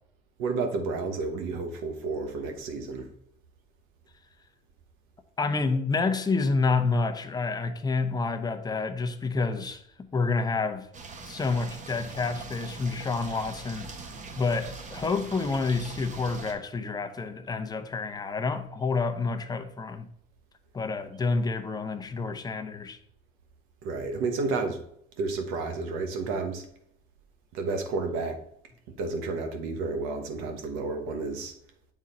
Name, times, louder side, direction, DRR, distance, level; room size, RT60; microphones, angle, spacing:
voice 1, 0.4-3.1 23.8-24.8 25.2-26.7 27.5-28.4 28.9-31.5, right 3 dB, 90° right, 1.2 m, -31 dB
voice 2, 5.4-9.8 10.1-10.9 11.3-13.9 14.4-20.1 20.7-23.0, left 4 dB, 20° left, 0.7 m, -28 dB
sound 1, 10.9-16.5, right 3 dB, 35° right, 1.1 m, -42 dB
7.3 x 3.8 x 4.1 m
cardioid pair, 105°, 21 cm